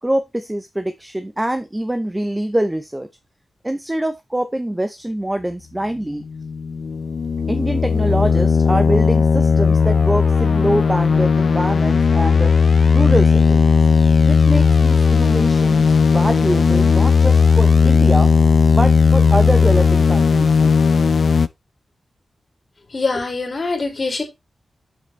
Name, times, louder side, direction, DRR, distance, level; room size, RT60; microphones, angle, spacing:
voice 1, 0.0-3.1 3.6-6.2 7.5-12.5 12.9-13.7 14.3-18.3 18.7-20.8, right 1 dB, 10° right, 0.6 m, -24 dB
sound 1, 6.3-21.5, left 5 dB, 60° left, 0.4 m, -15 dB
voice 2, 22.9-24.2, left 3 dB, 40° left, 2.6 m, -23 dB
7.4 x 6.6 x 3.1 m
wide cardioid pair, 120°, 0 cm